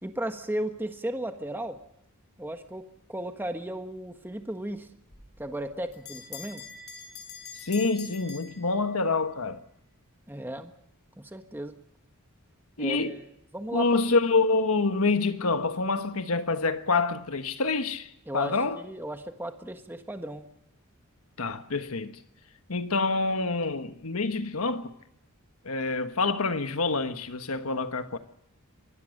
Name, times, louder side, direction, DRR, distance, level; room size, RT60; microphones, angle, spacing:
voice 1, 0.0-1.8 2.4-2.8 3.1-4.9 5.4-6.6 10.3-10.7 11.2-11.7 12.8-13.2 13.5-13.9 18.3-20.5, right 1 dB, 10° right, 1.4 m, -35 dB
Bell, 5.1-9.2, left 5 dB, 50° left, 7.2 m, -44 dB
voice 2, 7.5-9.6 12.8-13.2 13.7-18.8 21.4-22.2 22.7-24.9 25.6-28.2, left 3 dB, 75° left, 1.4 m, -27 dB
25.0 x 20.0 x 6.6 m
head